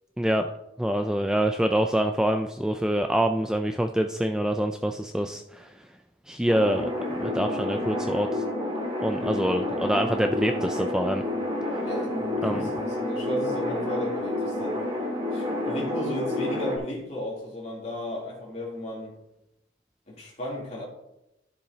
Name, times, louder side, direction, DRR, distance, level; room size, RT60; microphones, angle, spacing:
voice 1, 0.2-0.5 0.8-5.9 6.3-6.9 7.2-8.4 9.0-11.2 12.4-12.7, right 1 dB, 5° right, 5 dB, 0.3 m, -26 dB
sound 1, 6.5-16.8, left 1 dB, 25° right, 2.0 m, -29 dB
voice 2, 11.8-14.8 15.3-19.1 20.1-20.8, left 1 dB, 35° left, -4 dB, 3.1 m, -33 dB
13.0 x 7.0 x 2.8 m, 0.89 s
head